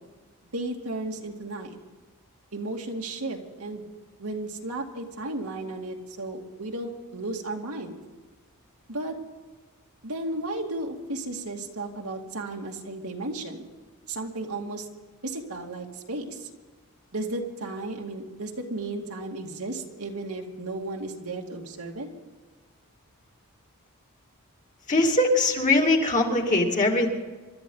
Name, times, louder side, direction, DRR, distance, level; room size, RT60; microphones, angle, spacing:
voice 1, 0.5-1.8 2.5-3.8 4.2-7.9 8.9-9.2 10.0-13.7 14.1-14.9 15.2-16.5 17.1-22.1, right 2 dB, 80° right, 1 dB, 2.3 m, -34 dB
voice 2, 24.9-27.1, left 2 dB, 35° left, 0 dB, 2.5 m, -21 dB
26.5 x 12.5 x 4.0 m, 1.3 s
head